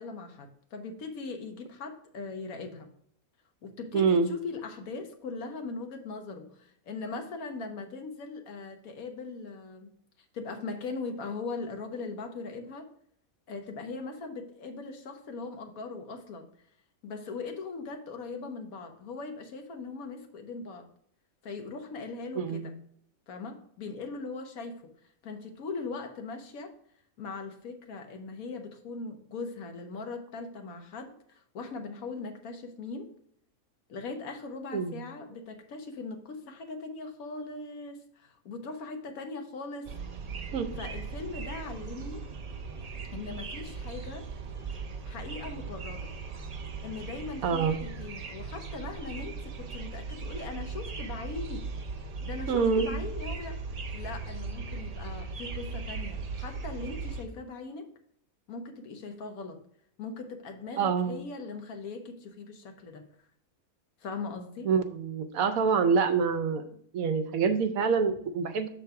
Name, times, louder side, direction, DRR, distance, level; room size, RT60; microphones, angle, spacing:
voice 1, 0.0-2.9 3.6-9.9 10.3-12.9 13.5-16.5 17.0-20.9 21.4-22.7 23.3-24.8 25.2-26.7 27.2-33.1 33.9-39.9 40.8-42.2 43.1-44.3 45.1-46.1 46.8-51.7 52.2-53.6 53.9-57.9 58.5-59.6 60.0-63.1 64.0-64.7, left 4 dB, 85° left, 5 dB, 1.4 m, -40 dB
voice 2, 3.9-4.3 22.4-22.7 34.7-35.0 40.5-40.7 47.4-47.8 52.5-52.9 60.8-61.2 64.6-66.6 66.9-68.7, right 5 dB, 75° right, 9 dB, 1.1 m, -26 dB
sound 1, 39.9-57.2, right 4 dB, 55° right, 0.4 m, -38 dB
6.7 x 3.9 x 4.6 m, 0.67 s
omnidirectional pair, 1.5 m